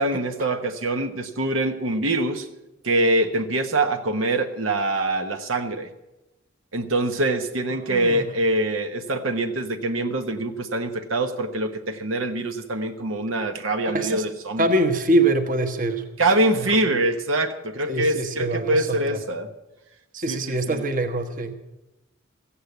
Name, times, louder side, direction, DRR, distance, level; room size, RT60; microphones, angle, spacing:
voice 1, 0.0-2.5 2.8-5.9 6.7-14.7 16.2-19.5 20.3-20.8, right 2 dB, 80° right, 5 dB, 1.2 m, -24 dB
voice 2, 7.9-8.3 13.8-14.2 14.6-16.0 16.5-16.7 17.9-19.2 20.1-21.5, right 2 dB, 40° right, 6 dB, 1.2 m, -24 dB
15.0 x 8.6 x 8.4 m, 0.98 s
head